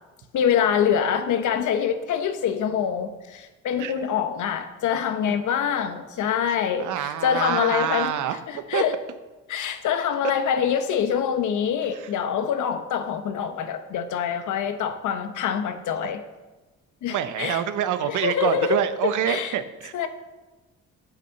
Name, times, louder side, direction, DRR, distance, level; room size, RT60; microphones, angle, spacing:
voice 1, 0.3-8.1 8.5-8.9 9.5-16.2 17.0-17.6 18.1-19.5 19.9-20.1, left 8 dB, 75° left, 8 dB, 1.2 m, -25 dB
voice 2, 6.8-8.8 11.9-12.1 16.0-16.1 17.1-19.9, right 10 dB, 80° right, 11 dB, 0.9 m, -26 dB
8.6 x 8.6 x 6.6 m, 1.2 s
cardioid pair, 90°, 30 cm